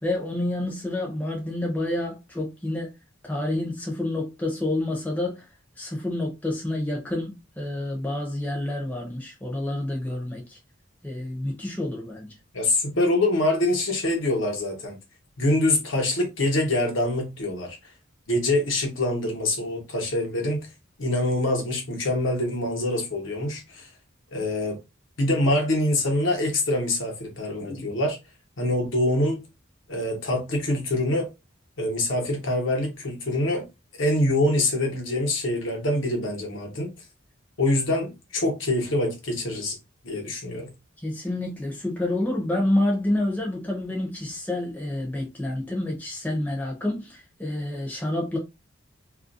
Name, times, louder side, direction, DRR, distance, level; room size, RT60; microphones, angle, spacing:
voice 1, 0.0-3.0 3.2-5.4 5.8-10.6 11.0-12.3 41.0-48.4, left 1 dB, 10° left, 0.6 m, -28 dB
voice 2, 12.5-15.0 15.4-17.8 18.3-20.7 21.0-23.9 24.3-24.8 25.2-28.2 28.6-29.4 29.9-31.3 31.8-33.7 34.0-36.9 37.6-39.8 40.0-40.7, left 1 dB, 70° left, 0.9 m, -25 dB
2.4 x 2.1 x 2.5 m
head